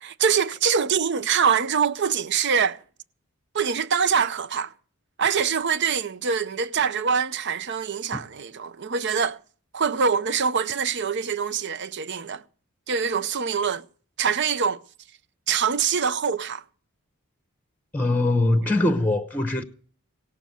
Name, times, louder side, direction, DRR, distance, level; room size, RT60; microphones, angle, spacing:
voice 1, 0.0-2.8 3.5-4.7 5.2-9.4 9.7-12.4 12.9-13.8 14.2-14.8 15.5-16.6, right 6 dB, 55° right, 0.6 m, -24 dB
voice 2, 17.9-19.6, left 2 dB, 10° left, 0.8 m, -22 dB
17.5 x 6.8 x 7.6 m
head